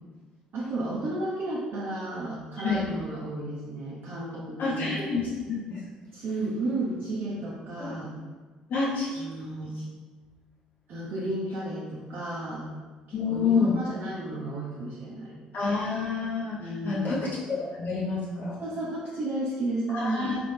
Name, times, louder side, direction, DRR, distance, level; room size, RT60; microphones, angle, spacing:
voice 1, 0.5-5.0 6.1-8.1 9.2-9.8 10.9-12.7 13.1-15.4 16.6-17.1 18.6-20.3, right 2 dB, 50° right, -7 dB, 0.8 m, -33 dB
voice 2, 4.6-5.8 7.8-7.9 8.7-9.2 13.1-13.8 15.5-18.6 19.9-20.4, left 4 dB, 50° left, -8 dB, 1.0 m, -28 dB
3.9 x 3.4 x 3.4 m, 1.3 s
hypercardioid pair, 55°, 4 cm